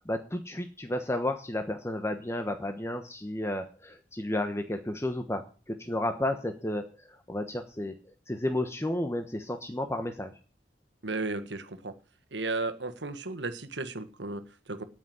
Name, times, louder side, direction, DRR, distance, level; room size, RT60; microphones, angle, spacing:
voice 1, 0.0-7.9 8.3-10.3, left 1 dB, 15° left, 6 dB, 1.1 m, -32 dB
voice 2, 11.0-11.9 12.3-14.8, right 3 dB, 85° right, 9 dB, 1.6 m, -34 dB
9.3 x 8.0 x 9.4 m, 0.37 s
head